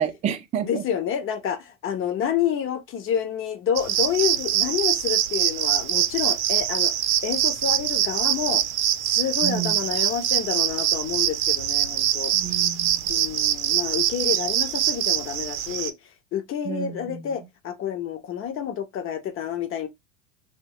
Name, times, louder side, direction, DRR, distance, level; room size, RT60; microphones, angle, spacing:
voice 1, 0.0-0.8 9.4-9.8 12.3-13.0 16.6-17.3, right 8 dB, 20° right, 0.4 m, -29 dB
voice 2, 0.6-6.9 7.2-8.6 9.0-12.6 13.1-15.9 16.3-19.9, left 9 dB, 35° left, 0.6 m, -28 dB
sound 1, 3.8-15.9, right 12 dB, 65° right, 0.6 m, -24 dB
3.0 x 2.1 x 2.7 m
hypercardioid pair, 100°, 39 cm